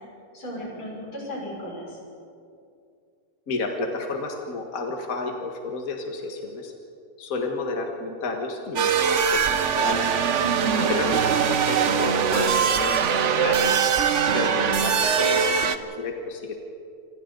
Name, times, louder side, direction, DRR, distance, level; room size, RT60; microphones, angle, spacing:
voice 1, 0.3-2.0 10.4-10.9, equal, 80° left, -4 dB, 7.4 m, -35 dB
voice 2, 3.5-6.7 7.2-10.1 10.9-11.2 11.5-13.7 14.3-16.6, left 3 dB, 45° left, 2 dB, 2.0 m, -31 dB
sound 1, 8.8-15.8, right 7 dB, 55° right, 0.8 m, -22 dB
28.5 x 25.5 x 4.0 m, 2.4 s
omnidirectional pair, 2.3 m